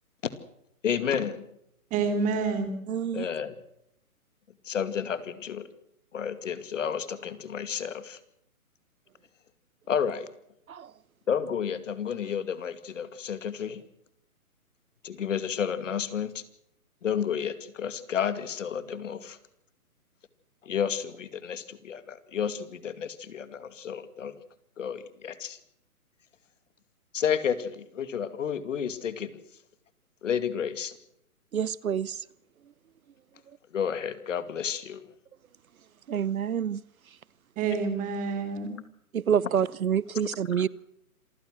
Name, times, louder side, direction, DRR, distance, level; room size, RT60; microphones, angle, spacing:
voice 1, 0.8-1.5 3.1-3.6 4.6-5.7 6.1-8.2 9.9-10.3 11.3-13.8 15.0-16.4 17.0-19.4 20.6-24.3 24.8-25.6 27.1-29.3 30.2-30.9 33.7-35.0 40.6-40.7, left 8 dB, 55° left, 2.4 m, -31 dB
voice 2, 1.9-2.7 37.6-38.7, right 4 dB, 20° right, 3.3 m, -28 dB
voice 3, 2.9-3.3 10.7-10.9 31.5-32.2 36.1-36.8 39.1-40.7, right 8 dB, 70° right, 0.9 m, -27 dB
27.0 x 15.5 x 7.6 m
hypercardioid pair, 150°, 44 cm